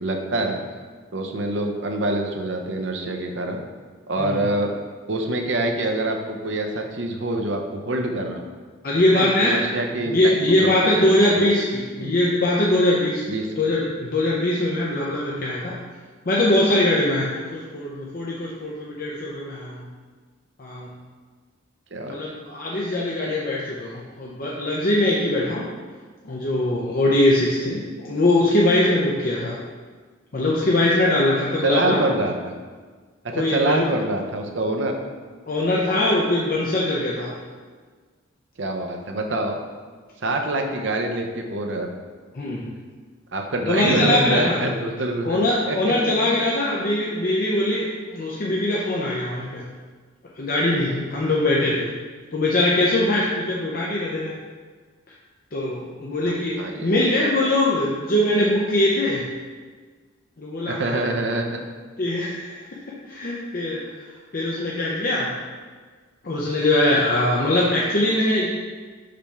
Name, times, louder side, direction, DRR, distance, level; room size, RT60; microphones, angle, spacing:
voice 1, 0.0-0.6 1.1-3.6 4.1-4.8 5.1-8.4 9.1-10.2 10.6-11.5 12.0-12.1 13.3-13.7 21.9-22.2 31.6-32.5 33.2-35.0 38.6-39.6 40.2-41.9 43.3-45.4 45.7-45.9 56.3-57.0 60.7-61.4, right 2 dB, 65° right, 3 dB, 0.7 m, -25 dB
voice 2, 8.8-9.6 10.1-13.2 13.6-15.7 16.3-19.8 20.6-20.9 22.0-25.6 26.2-29.6 30.3-32.0 33.3-33.9 35.5-37.3 42.3-42.6 43.7-44.6 45.2-49.7 50.4-51.9 52.3-54.3 55.5-59.2 60.4-61.0 62.0-62.6 63.1-63.8 64.3-65.3 66.2-68.5, left 1 dB, 45° left, -4 dB, 0.6 m, -22 dB
5.1 x 3.4 x 5.6 m, 1.5 s
head